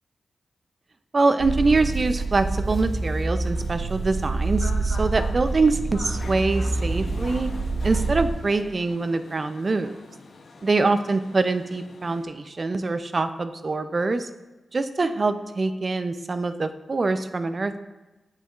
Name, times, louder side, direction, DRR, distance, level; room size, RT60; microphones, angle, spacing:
voice 1, 1.1-7.5 7.8-10.0 10.6-14.3 14.7-17.7, right 3 dB, 50° right, 10 dB, 0.4 m, -24 dB
sound 1, 1.4-8.3, right 3 dB, 65° right, 1.4 m, -27 dB
sound 2, 1.5-12.2, left 3 dB, 70° left, 0.7 m, -44 dB
8.2 x 6.6 x 2.4 m, 1.1 s
cardioid pair, 50°, 0 cm